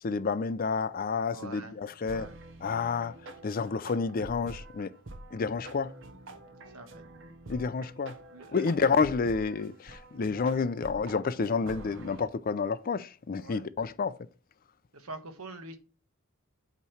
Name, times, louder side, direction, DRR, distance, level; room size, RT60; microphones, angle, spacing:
voice 1, 0.0-2.3 2.6-3.1 3.4-4.9 5.3-5.9 7.5-8.2 8.5-14.2, left 5 dB, 40° left, 0.4 m, -29 dB
voice 2, 1.3-1.7 2.1-2.3 6.7-7.0 8.3-8.7 13.4-13.7 14.9-15.8, right 2 dB, 85° right, 1.2 m, -44 dB
sound 1, 2.1-12.3, right 2 dB, 60° right, 0.9 m, -47 dB
8.3 x 3.0 x 5.7 m
head